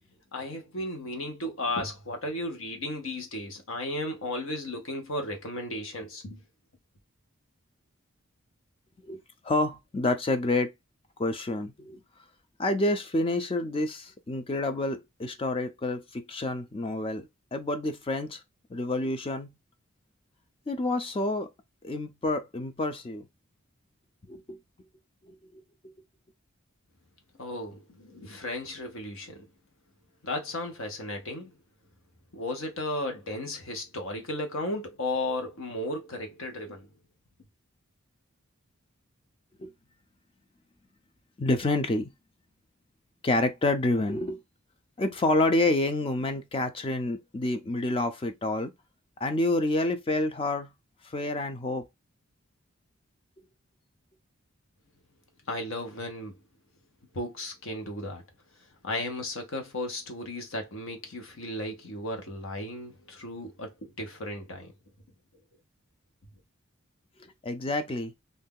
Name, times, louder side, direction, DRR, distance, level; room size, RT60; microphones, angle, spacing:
voice 1, 0.3-6.4 27.4-29.5 30.2-31.5 32.3-36.9 55.5-56.4 57.1-58.2 58.8-64.7, left 1 dB, 70° left, 0.9 m, -35 dB
voice 2, 9.4-10.7 11.2-12.0 12.6-18.4 18.7-19.5 20.7-21.5 21.8-23.3 24.3-24.6 39.6-39.7 41.4-42.1 43.2-44.4 45.0-48.7 49.2-50.7 51.1-51.8 67.4-68.1, left 2 dB, 25° left, 0.4 m, -28 dB
2.6 x 2.3 x 3.6 m
head